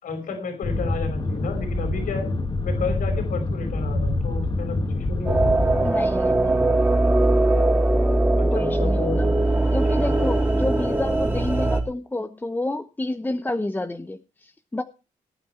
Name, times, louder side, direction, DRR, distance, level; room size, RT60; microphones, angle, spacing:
voice 1, 0.0-2.3 2.6-5.5 8.4-9.3 9.9-10.3, left 4 dB, 80° left, 6 dB, 5.3 m, -32 dB
sound 1, 0.6-5.9, left 2 dB, 35° left, 2.4 m, -26 dB
sound 2, 5.3-11.8, right 2 dB, 15° right, 3.7 m, -20 dB
voice 2, 5.8-6.6 8.5-9.3 9.7-14.8, left 2 dB, 15° left, 7 dB, 1.0 m, -29 dB
19.0 x 9.4 x 4.6 m, 0.31 s
cardioid pair, 115°, 14 cm